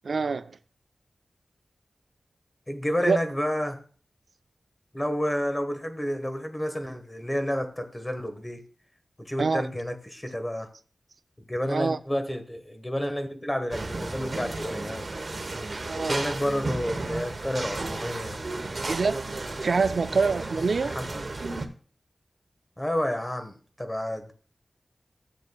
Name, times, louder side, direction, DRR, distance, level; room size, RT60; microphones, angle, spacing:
voice 1, 0.0-0.6 3.1-3.2 9.4-9.6 11.7-12.0 15.8-16.2 18.9-21.0, right 4 dB, 75° right, 0.4 m, -26 dB
voice 2, 2.7-3.8 4.9-8.6 9.2-10.7 11.5-15.1 16.0-18.4 20.5-21.2 22.8-24.3, equal, 20° left, 1.4 m, -30 dB
sound 1, 13.7-21.7, right 2 dB, 50° right, 1.1 m, -33 dB
14.0 x 7.7 x 2.3 m
wide cardioid pair, 75°, 0 cm